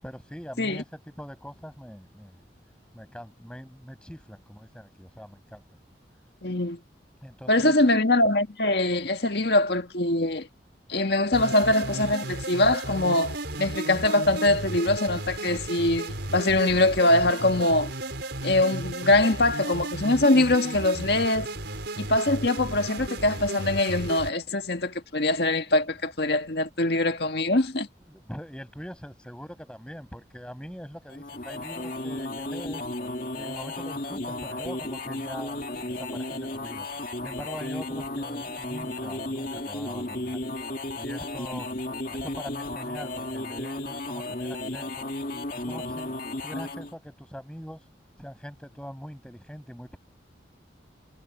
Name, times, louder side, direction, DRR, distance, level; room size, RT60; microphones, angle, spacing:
voice 1, 0.0-2.4 2.9-5.6 7.2-7.7 28.1-32.8 33.3-36.9 37.2-40.4 41.0-41.7 42.1-45.1 45.5-46.1 46.4-47.8 48.2-50.0, equal, 5° left, 6.6 m, -42 dB
voice 2, 6.4-6.8 7.5-10.5 10.9-17.9 18.4-21.5 22.0-27.9, left 2 dB, 65° left, 1.7 m, -23 dB
sound 1, 11.3-24.3, right 2 dB, 75° right, 4.5 m, -34 dB
sound 2, 31.1-46.9, left 2 dB, 50° left, 2.4 m, -34 dB
head